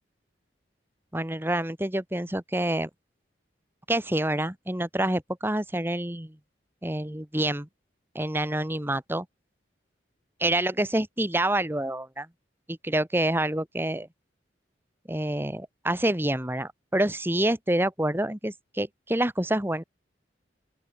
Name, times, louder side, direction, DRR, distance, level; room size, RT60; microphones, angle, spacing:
voice 1, 1.1-2.9 3.9-6.4 6.8-7.7 8.2-9.3 10.4-12.3 12.7-14.1 15.1-19.8, right 1 dB, 10° right, 1.8 m, -27 dB
open air
head